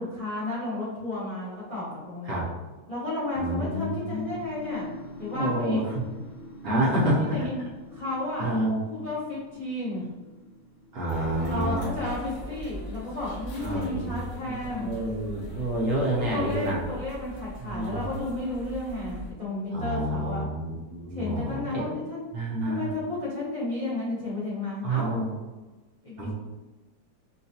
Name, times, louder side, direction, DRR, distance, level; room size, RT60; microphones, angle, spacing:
voice 1, 0.0-2.5 2.9-4.9 5.2-5.8 7.0-7.5 7.9-8.6 8.9-10.1 11.4-14.9 16.2-20.4 21.1-22.2 22.6-25.1 26.0-26.3, left 2 dB, 40° left, -7 dB, 0.5 m, -32 dB
sound 1, 3.2-13.2, left 2 dB, 55° left, 1.0 m, -46 dB
voice 2, 3.4-4.3 5.3-6.0 6.6-7.4 8.4-8.8 10.9-11.9 13.6-14.2 14.4-16.8 17.6-18.1 19.7-21.9 22.3-22.8 24.8-25.3 26.2-26.3, right 1 dB, 65° right, -5 dB, 1.2 m, -28 dB
sound 2, 11.1-19.3, right 1 dB, 80° left, 1.7 m, -41 dB
4.7 x 2.2 x 2.7 m, 1.2 s
omnidirectional pair, 1.8 m